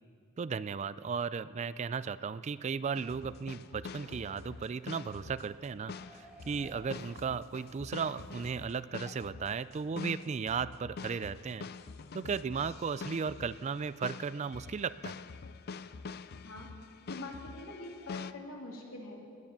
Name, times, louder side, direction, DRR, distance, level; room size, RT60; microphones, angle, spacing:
voice 1, 0.4-11.7 12.1-15.2, right 5 dB, 30° right, 16 dB, 0.3 m, -35 dB
sound 1, 2.9-18.3, left 4 dB, 50° left, 0.4 m, -45 dB
sound 2, 3.6-8.6 9.1-9.2, equal, 5° right, 4.2 m, -58 dB
voice 2, 17.1-19.2, left 2 dB, 90° left, -2 dB, 3.0 m, -44 dB
19.0 x 9.7 x 7.4 m, 2.3 s
head